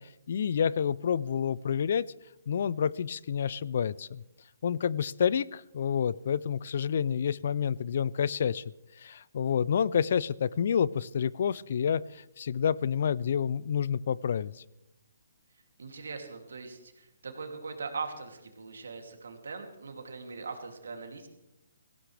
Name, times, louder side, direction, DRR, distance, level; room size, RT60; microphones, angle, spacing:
voice 1, 0.0-2.1 2.5-4.2 4.6-8.6 9.0-14.6, left 7 dB, 55° left, 22 dB, 0.4 m, -29 dB
voice 2, 15.8-21.3, right 4 dB, 80° right, 4 dB, 2.7 m, -40 dB
18.0 x 16.0 x 3.4 m, 0.92 s
hypercardioid pair, 155°, 0 cm